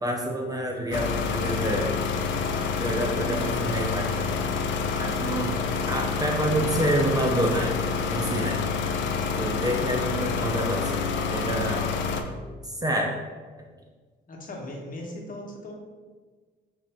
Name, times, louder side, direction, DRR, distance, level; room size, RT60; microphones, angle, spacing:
voice 1, 0.0-1.9 2.8-4.3 5.0-5.6 5.9-7.8 8.1-8.7 9.4-10.9 11.3-11.9 12.6-13.1, right 1 dB, 20° right, 0 dB, 0.4 m, -27 dB
sound 1, 0.9-12.2, left 5 dB, 70° left, 0.4 m, -28 dB
voice 2, 14.3-15.7, left 1 dB, 45° left, 0 dB, 0.9 m, -38 dB
3.7 x 2.6 x 3.4 m, 1.4 s
cardioid pair, 90°, 20 cm